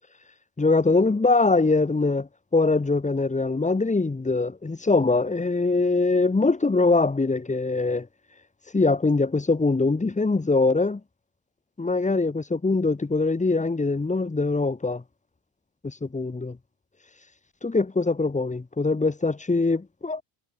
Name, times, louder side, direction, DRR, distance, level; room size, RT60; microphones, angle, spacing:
voice 1, 0.6-8.1 8.7-11.0 11.8-15.0 15.8-16.6 17.6-20.2, left 3 dB, 15° left, 4.9 m, -23 dB
cardioid pair, 120°, 48 cm